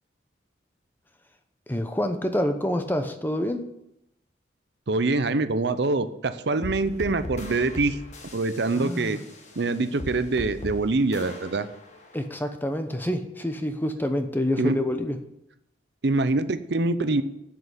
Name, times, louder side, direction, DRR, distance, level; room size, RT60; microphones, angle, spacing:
voice 1, 1.7-3.6 8.7-9.2 12.1-15.2, left 1 dB, 10° left, 7 dB, 0.8 m, -27 dB
voice 2, 4.9-8.0 8.3-9.2 9.6-11.7 14.6-14.8 16.0-17.2, right 3 dB, 60° right, 12 dB, 0.6 m, -24 dB
sound 1, 6.6-12.3, left 1 dB, 35° left, 1.5 m, -39 dB
7.8 x 7.8 x 8.1 m, 0.83 s
head